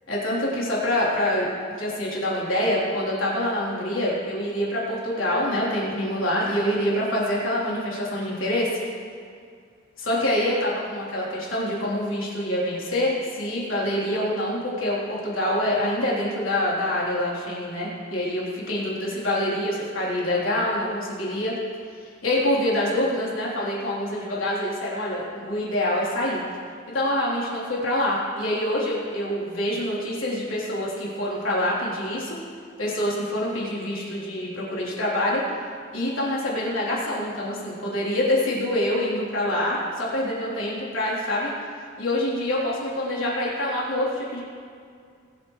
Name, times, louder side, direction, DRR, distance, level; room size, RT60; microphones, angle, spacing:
voice 1, 0.1-1.5 1.8-8.8 10.0-21.5 22.0-26.4 26.9-32.4 32.8-35.4 35.9-41.5 42.0-44.4, left 1 dB, 75° left, -6 dB, 3.6 m, -26 dB
22.0 x 8.2 x 3.2 m, 2.2 s
head